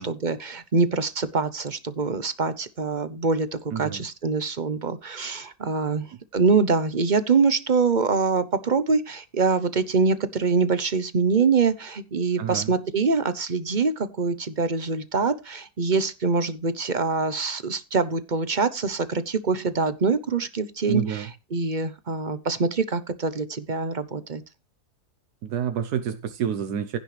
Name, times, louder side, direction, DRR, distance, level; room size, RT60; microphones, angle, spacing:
voice 1, 0.0-6.1 6.3-24.4, right 4 dB, 35° right, 0.8 m, -24 dB
voice 2, 3.7-4.0 12.4-12.7 20.9-21.3 25.4-27.0, right 8 dB, 85° right, 1.4 m, -28 dB
16.0 x 6.5 x 3.3 m
omnidirectional pair, 1.7 m